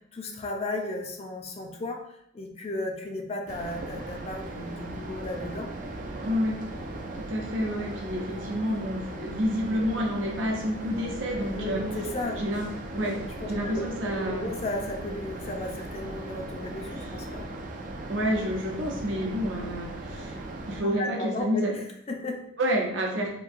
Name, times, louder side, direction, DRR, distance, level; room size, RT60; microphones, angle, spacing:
voice 1, 0.1-2.0 2.3-5.7 7.8-7.9 11.6-12.4 13.4-13.8 14.2-17.5 21.0-22.4, left 2 dB, 35° left, 2 dB, 0.4 m, -34 dB
sound 1, 3.5-20.8, right 2 dB, 45° right, 0.3 m, -38 dB
voice 2, 6.2-6.5 7.2-11.8 12.3-12.7 12.9-13.2 13.5-14.5 18.1-20.4 20.7-21.7 22.6-23.3, equal, 70° right, -1 dB, 0.7 m, -29 dB
3.0 x 2.6 x 2.5 m, 0.76 s
head